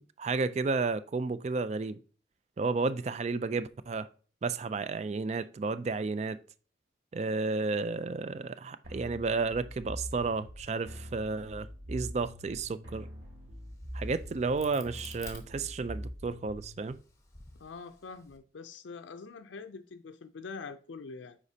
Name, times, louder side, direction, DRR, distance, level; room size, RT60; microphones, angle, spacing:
voice 1, 0.2-2.0 2.6-4.1 4.4-6.4 7.1-13.1 13.9-17.0, right 4 dB, 35° right, 0.3 m, -32 dB
sound 1, 8.8-16.8, equal, 85° right, 2.9 m, -44 dB
Crack, 13.5-16.2 16.7-18.4, left 3 dB, 15° left, 0.9 m, -51 dB
voice 2, 17.6-21.4, left 4 dB, 75° left, 0.4 m, -44 dB
8.1 x 5.1 x 2.8 m
head